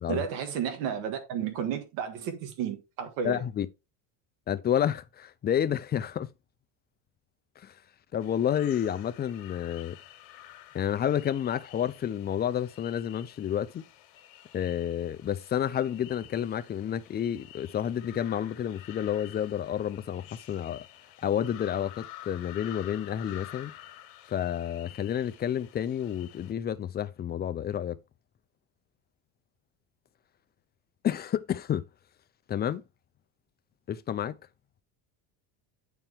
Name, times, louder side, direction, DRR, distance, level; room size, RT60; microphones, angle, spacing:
voice 1, 0.1-3.4, right 8 dB, 80° right, 1.8 m, -32 dB
voice 2, 3.2-3.7 4.5-6.3 7.6-7.7 8.1-10.0 10.7-13.8 14.5-20.9 21.2-23.7 24.3-28.0 31.0-31.8 32.5-32.8 33.9-34.4, left 9 dB, 25° left, 0.4 m, -30 dB
sound 1, 8.2-26.5, left 13 dB, 75° left, 1.5 m, -50 dB
8.9 x 4.5 x 3.5 m
cardioid pair, 130°, 45 cm